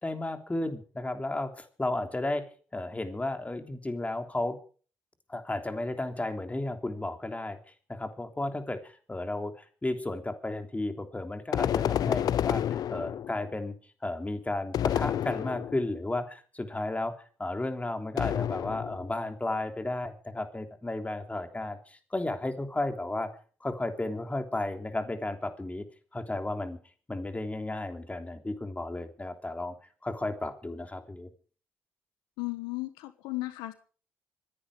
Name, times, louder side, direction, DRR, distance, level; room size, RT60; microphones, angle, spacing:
voice 1, 0.0-4.6 5.3-7.6 7.9-13.7 14.0-17.1 17.4-23.3 23.6-25.8 26.1-26.8 27.1-29.7 30.0-31.3, left 2 dB, 20° left, 6 dB, 3.4 m, -33 dB
sound 1, 11.5-13.5 14.7-15.9 18.2-19.2, left 10 dB, 65° left, 0.6 m, -29 dB
voice 2, 32.4-33.7, left 21 dB, 85° left, 11 dB, 1.2 m, -35 dB
25.5 x 10.5 x 5.0 m, 0.42 s
hypercardioid pair, 50°, 7 cm